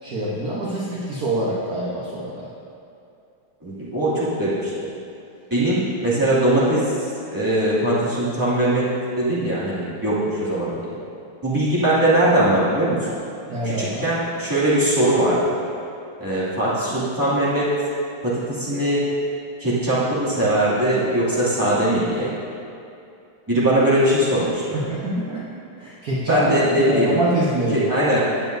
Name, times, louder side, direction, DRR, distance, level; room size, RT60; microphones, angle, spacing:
voice 1, 0.0-2.4 13.5-14.0 24.7-25.4 25.8-26.5 26.9-27.8, right 1 dB, 50° right, -7 dB, 1.4 m, -25 dB
voice 2, 3.6-4.9 5.5-6.9 7.3-8.9 9.2-10.9 11.4-13.0 13.6-15.6 16.2-17.7 18.2-19.0 19.6-22.3 23.5-24.8 26.3-27.2 27.7-28.3, right 1 dB, 10° right, -10 dB, 2.2 m, -20 dB
17.0 x 7.2 x 2.6 m, 2.6 s
omnidirectional pair, 2.4 m